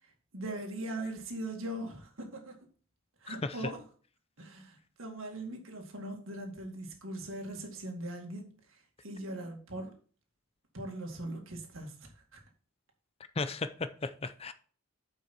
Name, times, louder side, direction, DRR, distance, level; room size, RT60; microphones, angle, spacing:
voice 1, 0.3-2.6 3.2-3.8 4.4-9.9 10.7-12.4, right 1 dB, 75° right, 2.1 m, -40 dB
voice 2, 13.4-14.5, left 3 dB, 30° left, 0.5 m, -35 dB
9.1 x 5.6 x 4.3 m
head